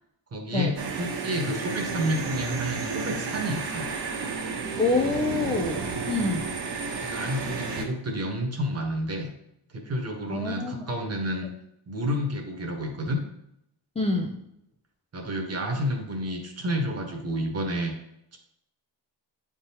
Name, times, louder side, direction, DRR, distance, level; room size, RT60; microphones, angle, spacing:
voice 1, 0.3-3.9 7.0-9.3 9.7-11.5 11.9-13.2 15.1-17.9 18.3-18.4, equal, 35° right, 2 dB, 1.2 m, -30 dB
sound 1, 0.8-7.9, right 4 dB, 65° right, 1.2 m, -32 dB
voice 2, 4.8-6.5 10.3-10.8 14.0-14.4, left 3 dB, 15° left, 0 dB, 0.4 m, -27 dB
8.8 x 3.7 x 2.9 m, 0.78 s
cardioid pair, 145°, 43 cm